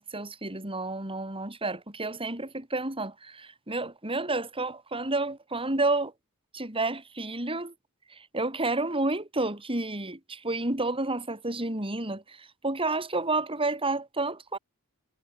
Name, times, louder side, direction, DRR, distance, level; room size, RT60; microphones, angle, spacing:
voice 1, 0.0-6.1 6.5-7.7 8.1-14.6, right 2 dB, 25° right, 5.3 m, -30 dB
head